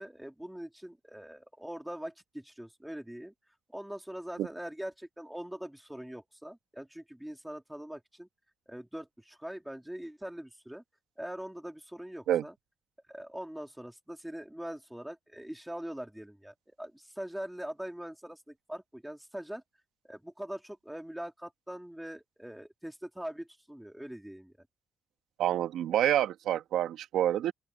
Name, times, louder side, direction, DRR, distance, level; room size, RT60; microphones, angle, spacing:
voice 1, 0.0-3.3 3.7-8.3 8.7-10.8 11.2-12.5 13.1-19.6 20.0-24.7, right 1 dB, 5° right, 3.2 m, -42 dB
voice 2, 25.4-27.5, right 11 dB, 80° right, 1.5 m, -27 dB
open air
cardioid pair, 90°, 0 cm